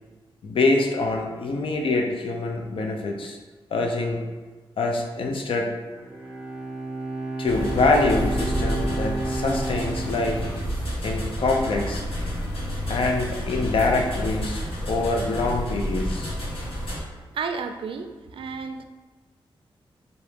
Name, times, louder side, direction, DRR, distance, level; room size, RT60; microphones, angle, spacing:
voice 1, 0.4-3.4 3.7-4.2 4.8-5.7 7.4-10.4 11.0-12.1 12.9-16.3, left 3 dB, 70° left, 2 dB, 0.6 m, -25 dB
Bowed string instrument, 5.9-11.3, right 2 dB, 10° right, 0.5 m, -32 dB
sound 1, 7.5-17.0, equal, 90° left, 1.3 m, -30 dB
voice 2, 17.3-18.8, right 5 dB, 70° right, 6 dB, 0.3 m, -32 dB
3.5 x 2.6 x 4.6 m, 1.3 s
wide cardioid pair, 180°, 9 cm